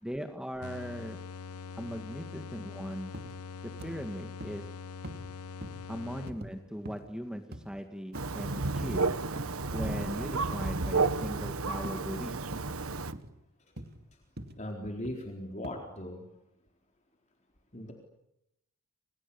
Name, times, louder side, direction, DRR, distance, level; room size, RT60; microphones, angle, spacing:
voice 1, 0.0-1.2 1.8-3.2 3.6-4.7 5.9-9.1 9.7-12.4, equal, 5° right, 5 dB, 2.0 m, -39 dB
sound 1, 0.6-6.7, left 5 dB, 90° left, 1.0 m, -43 dB
sound 2, 3.1-3.4 3.8-4.0 4.4-4.6 5.0-5.3 5.6-5.8 6.3-6.5 6.9-7.1 7.5-7.7 8.1-8.4 8.8-9.0 9.4-9.6 10.0-10.2 10.6-10.9 11.2-11.5 11.8-12.1 12.5-12.7 13.1-13.3 13.8-14.0 14.4-14.6 15.0-15.3 15.6-15.7, right 1 dB, 45° right, 2.4 m, -44 dB
Thunder, 8.1-13.1, right 3 dB, 70° right, 1.3 m, -32 dB
voice 2, 14.6-16.2 17.7-17.9, left 1 dB, 30° left, 1 dB, 4.1 m, -38 dB
29.5 x 28.5 x 7.1 m, 0.84 s
head